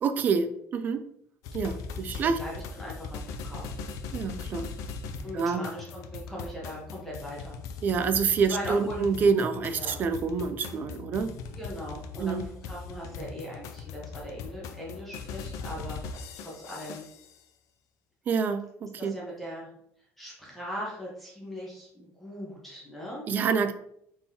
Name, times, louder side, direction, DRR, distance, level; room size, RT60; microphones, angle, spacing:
voice 1, 0.0-1.0 1.5-2.4 4.1-4.7 5.3-5.6 7.8-11.3 12.2-12.5 18.3-19.1 23.3-23.7, right 5 dB, 30° right, 10 dB, 0.3 m, -27 dB
sound 1, 1.4-17.4, left 4 dB, 60° left, 0.4 m, -40 dB
voice 2, 2.1-3.7 5.2-7.5 8.5-9.0 9.7-10.0 11.5-17.0 19.0-19.7 20.2-23.2, equal, 5° left, -5 dB, 1.0 m, -40 dB
4.2 x 3.7 x 2.7 m, 0.71 s
cardioid pair, 175°, 6 cm